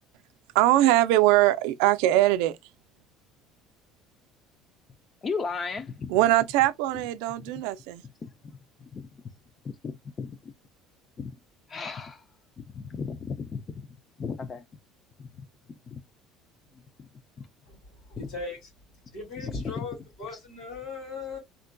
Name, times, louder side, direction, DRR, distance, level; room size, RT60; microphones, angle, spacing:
voice 1, 0.5-2.6 6.1-8.0, right 15 dB, 85° right, 0.4 m, -21 dB
voice 2, 5.2-6.3 8.2-9.1 9.6-10.5 11.2-11.4 11.7-12.2 12.6-13.9 14.2-14.6 15.2-15.3 15.7-16.0 16.7-17.1 17.4-17.5 18.2-18.4 19.4-19.9 20.3-20.4, left 5 dB, 25° left, 0.4 m, -36 dB
voice 3, 18.1-18.7 19.1-21.4, left 3 dB, 55° left, 2.5 m, -38 dB
3.6 x 2.2 x 2.5 m
cardioid pair, 140°, 0 cm